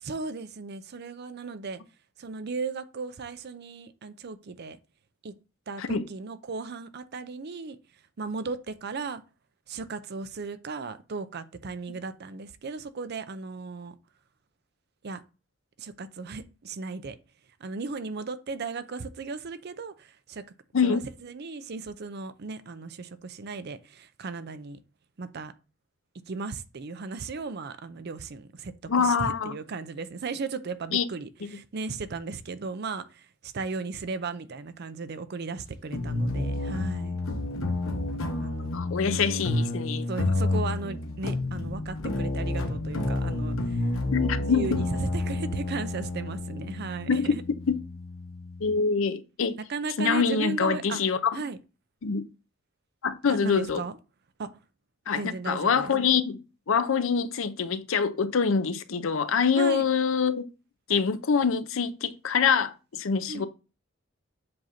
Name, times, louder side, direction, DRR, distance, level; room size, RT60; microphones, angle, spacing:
voice 1, 0.0-1.8 2.2-4.8 5.2-5.3 5.7-7.8 8.2-9.2 9.7-13.9 15.0-15.2 15.8-17.2 17.6-20.4 20.8-24.8 25.2-25.5 26.3-37.1 38.4-38.8 39.1-39.2 40.1-43.8 44.4-47.4 49.7-51.0 51.3-51.6 53.3-53.9 54.4-54.5 55.2-55.9 59.6-59.9 63.3-63.5, right 4 dB, 50° right, 0.5 m, -36 dB
voice 2, 28.9-29.6 30.9-31.0 31.4-31.6 38.7-40.1 44.1-44.8 47.1-47.3 47.7-47.8 48.6-49.6 50.0-51.3 52.0-52.2 53.0-53.8 55.1-56.4 56.7-60.5 60.9-63.5, left 6 dB, 70° left, 0.6 m, -25 dB
sound 1, 35.9-48.7, left 2 dB, 85° left, 1.0 m, -30 dB
7.6 x 2.6 x 5.7 m
head